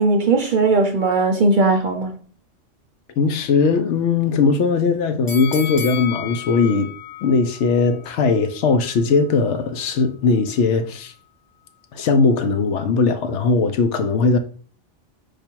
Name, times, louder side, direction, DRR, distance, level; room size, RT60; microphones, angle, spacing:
voice 1, 0.0-2.2, right 3 dB, 55° right, 0.5 m, -18 dB
voice 2, 3.2-6.9 7.2-11.1 11.9-14.4, left 4 dB, 75° left, 0.9 m, -19 dB
Boxing Bell, 5.3-8.4 8.8-8.9, left 8 dB, 30° left, 0.4 m, -33 dB
5.0 x 2.4 x 4.4 m
omnidirectional pair, 1.2 m